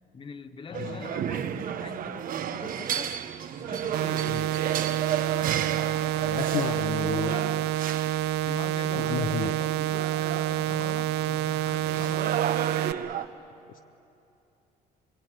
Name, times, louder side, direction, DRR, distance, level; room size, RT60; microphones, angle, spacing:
voice 1, 0.1-3.1 3.6-4.3 6.8-7.5 8.4-12.4, left 5 dB, 30° left, 9 dB, 1.2 m, -43 dB
voice 2, 0.7-1.1 4.3-4.4 6.2-7.7 9.0-9.6, left 8 dB, 55° left, 7 dB, 0.8 m, -32 dB
sound 1, 0.7-13.3, right 9 dB, 55° right, 1.1 m, -33 dB
sound 2, 3.9-12.9, right 13 dB, 85° right, 0.7 m, -28 dB
26.0 x 21.5 x 8.9 m, 2.8 s
cardioid pair, 110°, 17 cm